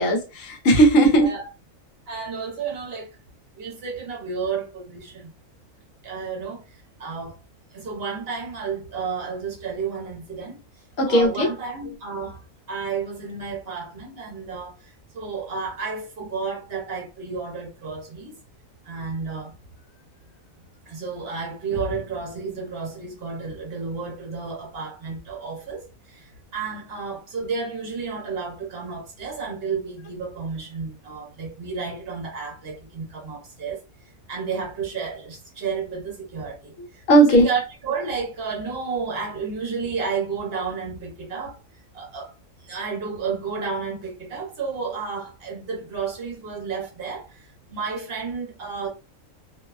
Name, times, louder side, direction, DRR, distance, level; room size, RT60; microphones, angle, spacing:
voice 1, 0.0-1.3 11.0-11.5 37.1-37.4, right 2 dB, 75° left, 1.0 m, -16 dB
voice 2, 1.2-1.5 2.1-3.2 3.5-5.3 6.0-6.6 7.0-7.4 7.7-10.6 11.1-12.4 12.7-18.3 18.8-19.5 20.9-33.8 34.3-41.6 41.9-42.3 42.6-48.9, right 5 dB, 55° right, 0.8 m, -31 dB
2.7 x 2.1 x 2.3 m
omnidirectional pair, 1.4 m